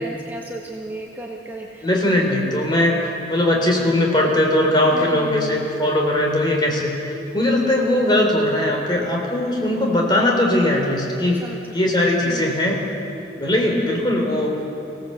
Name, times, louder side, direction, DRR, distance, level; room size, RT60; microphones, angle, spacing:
voice 1, 0.0-1.8 4.9-5.7 11.3-11.7 12.2-12.6, right 1 dB, 10° right, -2 dB, 1.5 m, -34 dB
voice 2, 1.8-6.9 7.3-11.4 11.7-12.8 13.3-14.5, left 1 dB, 25° left, 0 dB, 3.6 m, -19 dB
25.0 x 17.0 x 7.9 m, 2.8 s
head